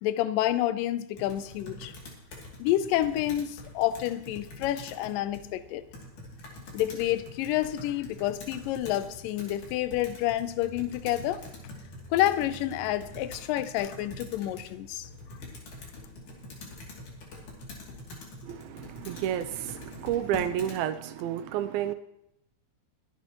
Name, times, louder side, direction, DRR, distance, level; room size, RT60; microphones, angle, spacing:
voice 1, 0.0-1.9 2.6-5.8 6.7-11.4 12.1-15.1, left 13 dB, 80° left, 2.2 m, -29 dB
Computer keyboard, 1.1-20.8, left 2 dB, 60° left, 4.0 m, -45 dB
voice 2, 18.4-21.9, right 11 dB, 85° right, 2.5 m, -31 dB
21.5 x 9.8 x 3.0 m
omnidirectional pair, 4.2 m